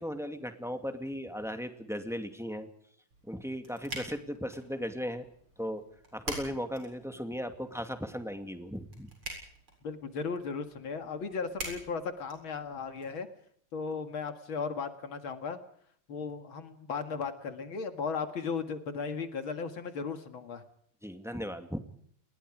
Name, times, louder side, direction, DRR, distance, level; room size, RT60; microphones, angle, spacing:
voice 1, 0.0-2.7 3.3-5.3 5.6-5.8 6.1-9.1 21.0-21.8, equal, ahead, 6 dB, 2.2 m, -37 dB
sound 1, 3.1-13.1, right 1 dB, 85° right, 8.5 m, -46 dB
voice 2, 9.8-13.3 13.7-15.6 16.1-20.6, left 5 dB, 75° left, 8 dB, 2.7 m, -36 dB
29.5 x 21.0 x 5.0 m, 0.65 s
omnidirectional pair, 2.3 m